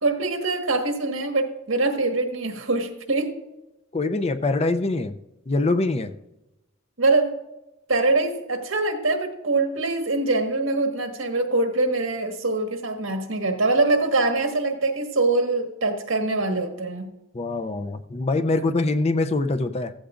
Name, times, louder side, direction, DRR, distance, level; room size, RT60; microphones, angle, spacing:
voice 1, 0.0-3.3 7.0-7.4 7.9-17.1, right 2 dB, 80° right, 5 dB, 1.6 m, -23 dB
voice 2, 3.9-5.2 5.5-6.1 17.3-19.9, left 2 dB, 30° left, 10 dB, 0.5 m, -24 dB
15.0 x 15.0 x 2.5 m, 0.95 s
head